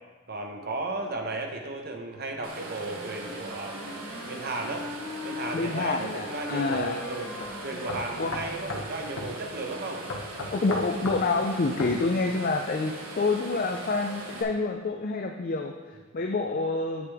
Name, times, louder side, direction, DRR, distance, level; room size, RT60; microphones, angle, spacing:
voice 1, 0.3-4.9 5.2-7.3 7.6-10.0 15.9-16.0, right 2 dB, 45° right, 2 dB, 0.9 m, -35 dB
Wind instrument woodwind instrument, 2.3-5.6 6.2-9.0, left 3 dB, 5° left, 0.9 m, -42 dB
sound 1, 2.4-14.4, right 2 dB, 85° right, 1.1 m, -40 dB
voice 2, 5.5-7.0 8.2-8.3 10.5-17.1, left 3 dB, 40° left, 4 dB, 0.4 m, -28 dB
sound 2, 6.7-6.8 7.4-7.5 7.9-8.9 9.2-9.3 10.1-11.2 11.8-12.0, left 2 dB, 90° left, 1.0 m, -35 dB
8.5 x 6.7 x 3.4 m, 1.3 s
head